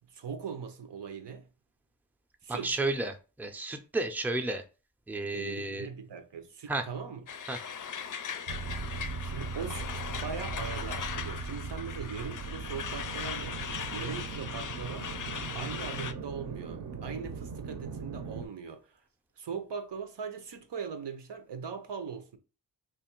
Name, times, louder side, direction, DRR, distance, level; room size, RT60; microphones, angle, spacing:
voice 1, 0.1-1.5 2.4-2.8 5.2-7.2 9.2-13.6 13.9-15.1 15.5-19.0 19.4-22.4, right 6 dB, 90° right, 0.7 m, -40 dB
voice 2, 2.5-4.6 5.1-5.9 6.7-6.8 7.5-7.6, right 2 dB, 5° right, 0.5 m, -32 dB
Truck, 7.3-16.1, left 7 dB, 50° left, 0.4 m, -39 dB
sound 1, 8.5-18.5, right 5 dB, 50° right, 0.6 m, -39 dB
3.1 x 2.5 x 4.4 m
wide cardioid pair, 80°, 40 cm